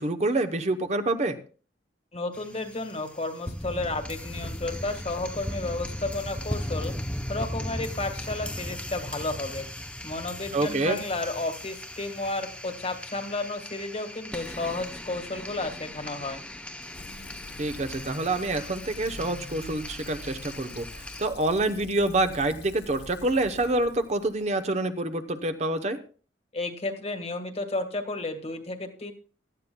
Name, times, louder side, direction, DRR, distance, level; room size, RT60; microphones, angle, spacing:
voice 1, 0.0-1.4 10.5-11.0 17.6-26.0, right 2 dB, 40° right, 9 dB, 0.8 m, -27 dB
voice 2, 2.1-6.9 7.3-9.6 10.0-16.4 26.5-29.1, left 2 dB, 35° left, 7 dB, 1.5 m, -32 dB
sound 1, 2.3-21.3, left 1 dB, 5° left, 0.6 m, -38 dB
Fill (with liquid), 16.9-24.6, left 2 dB, 60° left, 1.0 m, -45 dB
17.0 x 13.0 x 2.2 m, 0.39 s
head